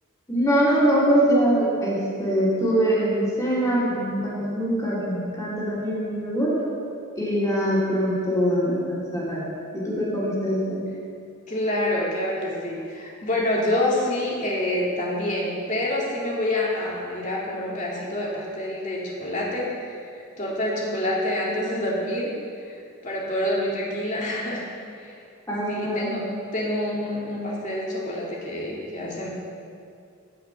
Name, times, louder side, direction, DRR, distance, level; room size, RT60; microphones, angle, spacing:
voice 1, 0.3-6.6 7.1-10.8 25.5-26.2, equal, 15° left, -7 dB, 2.9 m, -23 dB
voice 2, 11.5-20.0 20.4-22.3 22.7-22.8 23.0-24.6 24.9-25.1 25.7-29.3, left 1 dB, 35° left, -4 dB, 2.3 m, -27 dB
15.5 x 5.7 x 5.9 m, 2.4 s
head